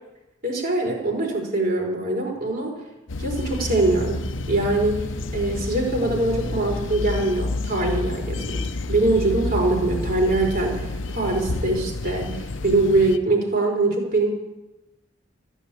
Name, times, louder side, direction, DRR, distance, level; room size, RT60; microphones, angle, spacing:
voice 1, 0.4-2.7 3.2-4.2 4.5-5.1 5.3-8.6 8.9-14.3, right 2 dB, 50° right, -1 dB, 4.8 m, -23 dB
sound 1, 3.1-13.2, left 2 dB, 75° left, 0.7 m, -29 dB
15.0 x 10.0 x 8.6 m, 1.0 s
head